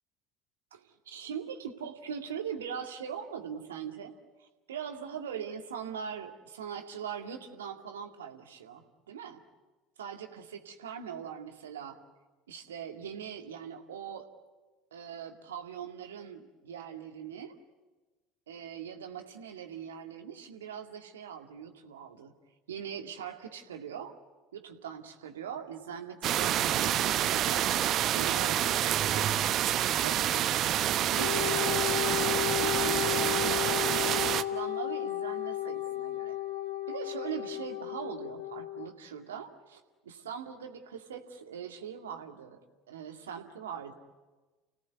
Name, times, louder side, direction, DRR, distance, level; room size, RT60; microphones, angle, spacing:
voice 1, 0.7-4.1 4.4-9.4 10.0-12.0 12.5-14.3 14.9-17.6 18.5-22.3 22.7-24.1 24.5-27.7 28.1-29.3 29.8-32.1 32.5-33.6 34.0-36.4 36.9-42.6 42.9-43.9, right 8 dB, 75° right, 5 dB, 2.2 m, -41 dB
sound 1, 26.2-34.4, right 11 dB, 45° right, 0.9 m, -27 dB
Wind instrument woodwind instrument, 31.2-38.9, left 13 dB, 70° left, 1.7 m, -33 dB
30.0 x 18.0 x 9.5 m, 1.2 s
figure-of-eight pair, 70°, 0 cm